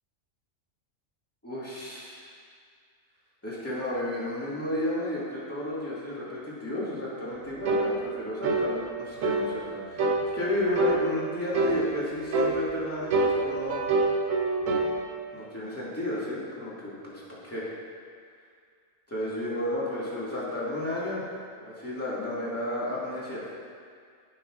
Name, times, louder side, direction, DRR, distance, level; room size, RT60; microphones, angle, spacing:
voice 1, 1.4-2.3 3.4-10.0 10.3-13.8 15.3-17.7 19.1-21.3 21.6-23.4, left 1 dB, 10° left, -9 dB, 2.0 m, -32 dB
sound 1, 7.7-7.9 8.4-8.7 9.2-9.5 10.0-10.2 10.8-11.0 11.5-11.8 12.3-12.6 13.1-14.9, right 3 dB, 85° right, 1.2 m, -25 dB
14.0 x 5.9 x 2.5 m, 2.1 s
omnidirectional pair, 1.3 m